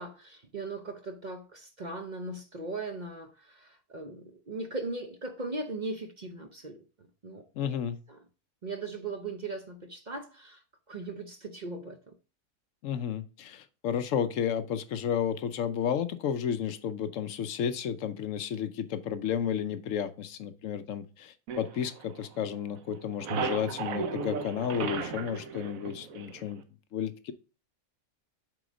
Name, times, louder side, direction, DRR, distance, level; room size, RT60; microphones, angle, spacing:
voice 1, 0.0-7.8 8.1-8.2 8.6-12.1, right 3 dB, 40° right, 6 dB, 0.7 m, -39 dB
voice 2, 7.6-8.0 12.8-26.6 26.9-27.3, left 8 dB, 70° left, 12 dB, 1.0 m, -32 dB
sound 1, 21.5-22.6 22.9-26.6, right 6 dB, 80° right, 1.2 m, -36 dB
7.7 x 3.9 x 5.1 m, 0.34 s
omnidirectional pair, 1.4 m